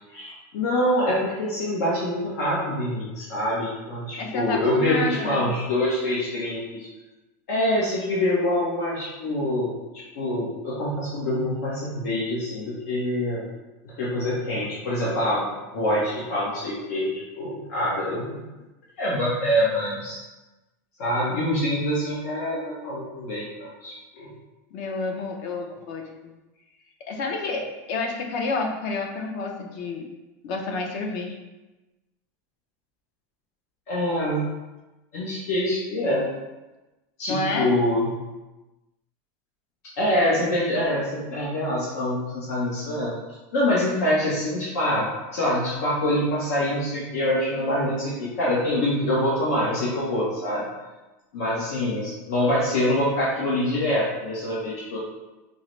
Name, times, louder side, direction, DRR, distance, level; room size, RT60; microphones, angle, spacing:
voice 1, 0.1-6.9 7.5-13.5 13.8-15.4 15.7-17.1 17.3-18.4 19.0-20.2 21.0-24.3 33.9-34.5 35.1-36.3 37.2-38.1 40.0-43.1 43.5-50.6 51.3-55.0, left 1 dB, 75° left, -6 dB, 0.8 m, -25 dB
voice 2, 4.2-5.5 24.7-26.1 27.1-30.1 30.4-31.4 37.3-37.7, left 3 dB, 50° left, 2 dB, 0.5 m, -29 dB
3.8 x 2.1 x 3.0 m, 1.1 s
supercardioid pair, 155°, 9 cm